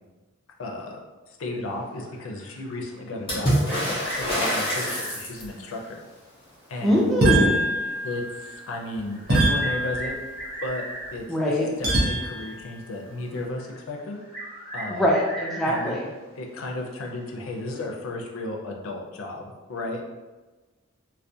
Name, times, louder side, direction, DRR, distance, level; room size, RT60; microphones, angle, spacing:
voice 1, 0.6-1.0 1.3-6.0 6.7-7.1 8.0-10.2 10.6-10.8 11.1-14.2 14.7-15.1 15.7-16.0 16.4-20.0, left 2 dB, 70° left, 1 dB, 0.4 m, -34 dB
sound 1, 1.5-3.1 3.5-6.2 6.4-6.5 7.2-7.3 7.9-11.5 12.2-12.4 13.0-16.2 16.6-16.7 17.7-18.0, right 1 dB, 25° right, 1.0 m, -39 dB
Water / Splash splatter, 3.3-5.7 9.0-9.1 9.3-10.1 11.2-11.3, equal, 25° left, 0.8 m, -26 dB
voice 2, 6.8-7.5 11.3-11.7 14.9-16.1, equal, ahead, -4 dB, 0.3 m, -22 dB
sound 2, 7.2-8.5 9.3-10.5 11.8-12.6, right 1 dB, 45° right, 0.6 m, -23 dB
2.3 x 2.1 x 2.6 m, 1.2 s
head